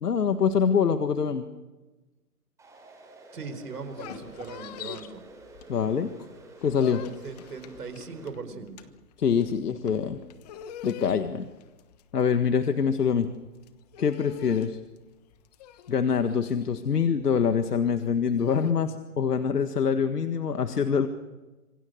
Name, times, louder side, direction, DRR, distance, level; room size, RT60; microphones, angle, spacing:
voice 1, 0.0-1.5 5.7-6.1 6.6-7.0 9.2-10.2 10.8-11.5 12.1-13.3 14.0-14.8 15.9-21.1, left 6 dB, 85° left, 8 dB, 1.8 m, -25 dB
sound 1, 2.6-8.3, right 2 dB, 5° right, 5.3 m, -50 dB
voice 2, 3.3-5.2 7.2-8.8, right 4 dB, 85° right, 9 dB, 4.8 m, -39 dB
sound 2, 3.7-6.1 6.4-18.7, left 9 dB, 25° left, 1.2 m, -44 dB
27.0 x 24.0 x 6.5 m, 1.2 s
hypercardioid pair, 155°, 45 cm